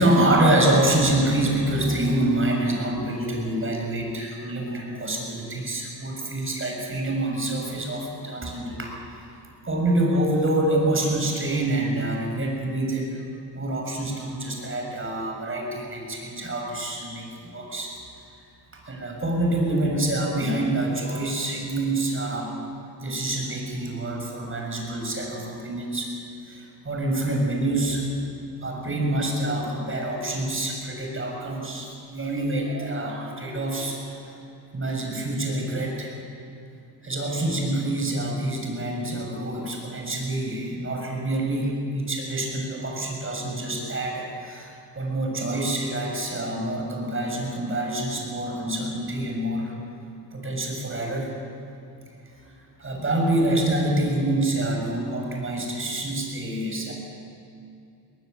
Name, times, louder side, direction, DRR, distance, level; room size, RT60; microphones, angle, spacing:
voice 1, 0.0-9.0 9.6-13.2 13.5-17.9 18.9-22.5 23.0-26.1 26.4-28.1 28.6-34.4 34.7-36.1 37.0-49.7 50.3-51.3 52.3-52.4 52.8-56.9, right 1 dB, 30° right, 1 dB, 7.0 m, -26 dB
21.0 x 20.0 x 8.1 m, 2.6 s
cardioid pair, 90°, 40 cm